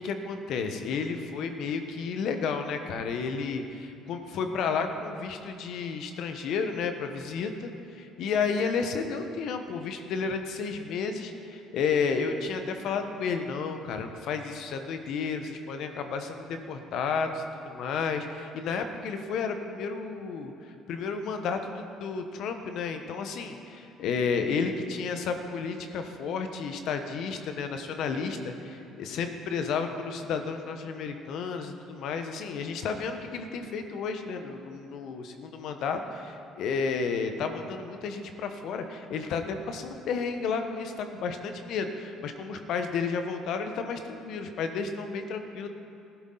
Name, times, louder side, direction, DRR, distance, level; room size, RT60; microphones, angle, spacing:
voice 1, 0.0-45.7, left 5 dB, 65° left, 6 dB, 1.1 m, -32 dB
15.0 x 11.5 x 4.0 m, 2.7 s
supercardioid pair, 70°, 0 cm